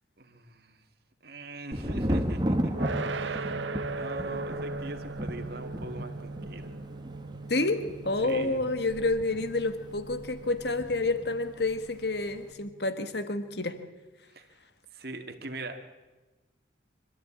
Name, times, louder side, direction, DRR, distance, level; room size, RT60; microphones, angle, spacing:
voice 1, 0.2-0.8 1.2-6.7 8.2-8.6 14.3-14.5 14.9-15.8, right 2 dB, 55° right, 5 dB, 2.2 m, -42 dB
Thunder, 1.7-11.4 11.6-12.3, equal, 25° right, 1.5 m, -35 dB
sound 1, 2.7-13.7, right 3 dB, 80° right, 1.0 m, -39 dB
voice 2, 7.5-13.8, left 2 dB, 60° left, 10 dB, 1.4 m, -29 dB
25.0 x 13.5 x 8.7 m, 1.2 s
head